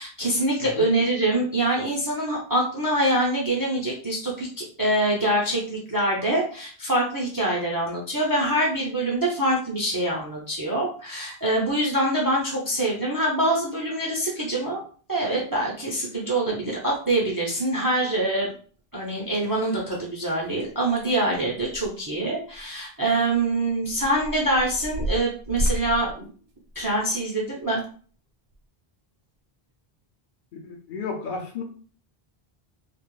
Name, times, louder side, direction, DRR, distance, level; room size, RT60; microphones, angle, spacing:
voice 1, 0.0-14.8 15.1-18.5 18.9-26.3 26.8-27.8, right 1 dB, 30° right, -3 dB, 0.4 m, -25 dB
sound 1, 17.4-17.9 19.6-19.7 19.9-20.0 20.4-22.2 22.5-22.6 23.3-27.1 27.7-27.9 28.5-28.6, right 1 dB, 60° right, 0.8 m, -32 dB
voice 2, 30.5-31.6, left 4 dB, 60° left, 1 dB, 0.7 m, -33 dB
2.4 x 2.0 x 3.0 m, 0.43 s
omnidirectional pair, 1.1 m